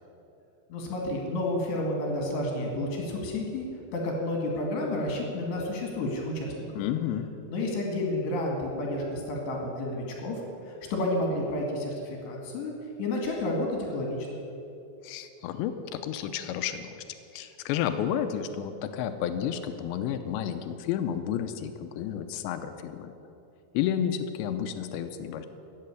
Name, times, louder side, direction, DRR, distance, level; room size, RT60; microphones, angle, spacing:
voice 1, 0.7-3.7 3.9-6.8 7.5-12.7 13.0-14.4, left 1 dB, 70° left, 0 dB, 4.2 m, -31 dB
voice 2, 6.8-7.3 15.0-17.0 17.3-23.1 23.7-25.5, left 9 dB, 90° left, 9 dB, 2.9 m, -31 dB
14.5 x 8.6 x 9.5 m, 2.8 s
omnidirectional pair, 5.2 m